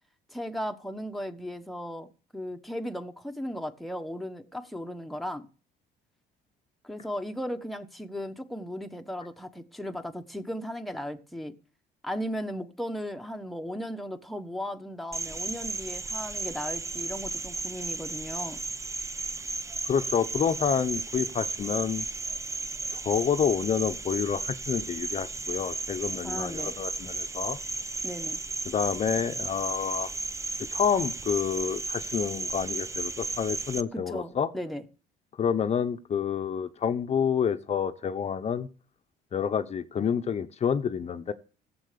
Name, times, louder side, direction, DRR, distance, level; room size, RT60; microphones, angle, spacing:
voice 1, 0.3-5.5 6.8-11.5 12.0-18.6 26.2-26.7 28.0-28.4 33.9-34.8, equal, ahead, 1.3 m, -36 dB
Cricket, 15.1-33.8, right 3 dB, 20° right, 0.8 m, -34 dB
voice 2, 19.9-22.1 22.9-27.6 28.7-30.1 30.7-34.5 35.4-38.7 39.3-41.3, left 7 dB, 40° left, 0.9 m, -28 dB
16.0 x 7.8 x 6.8 m
cardioid pair, 110°, 17 cm